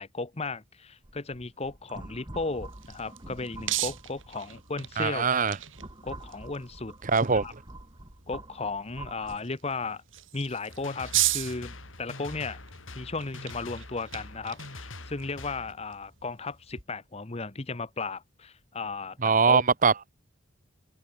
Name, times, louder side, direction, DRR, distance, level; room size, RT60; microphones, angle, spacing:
voice 1, 0.0-5.3 6.0-6.9 7.3-7.5 8.3-10.0 10.3-12.6 12.9-19.6, left 3 dB, 30° left, 1.0 m, -35 dB
sound 1, 1.0-4.9 5.4-9.4, right 2 dB, 20° right, 1.9 m, -46 dB
sound 2, 2.4-16.8, right 14 dB, 75° right, 6.4 m, -37 dB
voice 2, 5.0-5.6 7.1-7.4 19.2-20.1, right 5 dB, 40° right, 0.9 m, -22 dB
sound 3, 10.7-15.7, left 2 dB, 80° left, 6.3 m, -44 dB
head